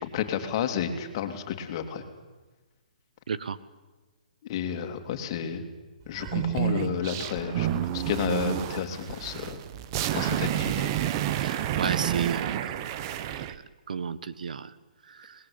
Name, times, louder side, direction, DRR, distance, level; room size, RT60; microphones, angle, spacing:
voice 1, 0.0-2.0 4.5-5.6 6.1-9.6 10.1-10.9, left 8 dB, 35° left, 6 dB, 2.8 m, -31 dB
sound 1, 6.1-13.5, right 11 dB, 30° right, 1.0 m, -29 dB
voice 2, 11.4-12.8 13.9-14.7 15.2-15.3, right 6 dB, 70° right, 16 dB, 1.3 m, -32 dB
25.0 x 20.0 x 8.8 m, 1.2 s
hypercardioid pair, 160°, 4 cm